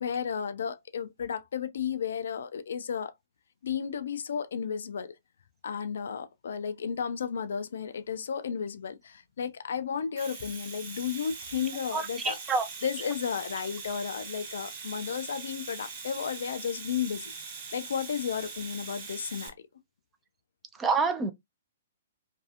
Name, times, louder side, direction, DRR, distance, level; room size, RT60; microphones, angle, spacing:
voice 1, 0.0-3.1 3.6-5.2 5.6-12.4 12.8-17.3 17.7-19.7, left 7 dB, 65° left, 0.3 m, -33 dB
Domestic sounds home sounds, 10.0-19.5, right 5 dB, 40° right, 0.8 m, -42 dB
voice 2, 11.9-12.7 20.8-21.3, right 4 dB, 15° right, 0.4 m, -27 dB
2.6 x 2.3 x 2.3 m
figure-of-eight pair, 120°, 0 cm